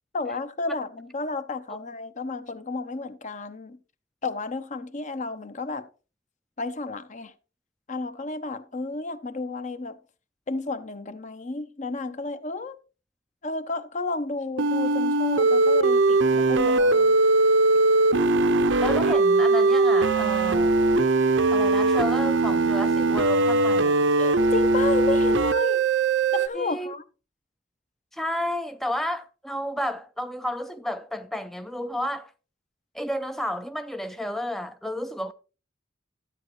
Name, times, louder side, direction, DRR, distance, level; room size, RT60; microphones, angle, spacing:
voice 1, 0.1-3.8 4.2-5.9 6.6-7.3 7.9-10.0 10.5-12.8 13.4-17.2 24.2-25.8 26.3-27.0, left 3 dB, 40° left, 0.8 m, -32 dB
sound 1, 14.6-26.5, right 2 dB, 80° right, 0.7 m, -20 dB
voice 2, 18.8-20.8 21.5-24.0 26.5-26.9 28.1-32.3 32.9-35.3, equal, ahead, 0.4 m, -31 dB
13.0 x 8.9 x 3.1 m
head